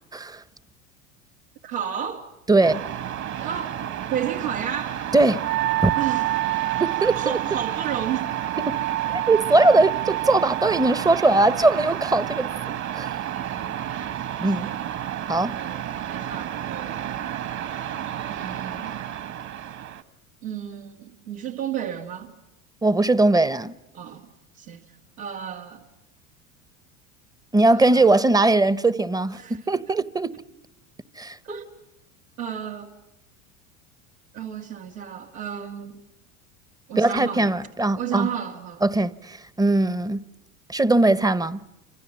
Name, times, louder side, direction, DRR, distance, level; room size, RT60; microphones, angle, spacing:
voice 1, 0.1-0.4 2.5-2.8 5.1-5.5 5.8-5.9 6.8-7.4 8.7-8.8 9.1-12.5 12.9-13.1 14.4-14.7 15.3-15.6 22.8-23.7 27.5-30.4 31.2-31.4 37.0-38.3 38.8-40.2 40.7-41.6, right 2 dB, 10° right, 0.9 m, -20 dB
voice 2, 1.6-2.3 3.4-3.8 4.1-5.0 6.0-6.5 7.1-8.3 13.4-13.7 14.6-14.8 15.4-17.2 18.3-19.0 20.4-22.3 23.9-24.3 24.6-24.8 25.2-25.8 27.7-28.3 29.4-29.6 31.4-31.7 32.4-32.9 34.3-36.0 36.9-37.5 38.0-38.8, right 9 dB, 85° right, 2.2 m, -32 dB
sound 1, 2.6-20.0, right 10 dB, 45° right, 1.7 m, -31 dB
Wind instrument woodwind instrument, 5.4-10.9, right 18 dB, 65° right, 2.3 m, -28 dB
28.5 x 25.5 x 7.5 m
hypercardioid pair, 85°, 40 cm